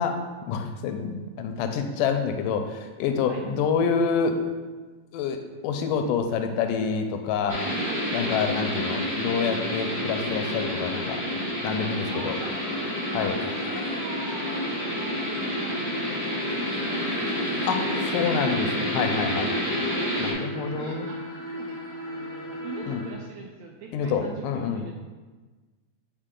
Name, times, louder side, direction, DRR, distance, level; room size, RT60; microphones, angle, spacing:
voice 1, 0.0-4.4 5.1-7.6 8.1-11.2 11.6-12.4 13.1-13.3 17.7-17.9 18.1-19.5 20.2-21.1 22.9-23.0 23.9-24.8, left 6 dB, 80° left, 6 dB, 2.2 m, -27 dB
sound 1, 7.5-20.3, equal, 5° right, 1.8 m, -29 dB
voice 2, 7.6-8.1 12.1-18.4 19.7-21.2 21.5-24.9, right 4 dB, 80° right, 0 dB, 1.6 m, -43 dB
sound 2, 12.3-23.1, equal, 15° left, 0.7 m, -39 dB
8.9 x 4.7 x 3.8 m, 1.3 s
omnidirectional pair, 3.8 m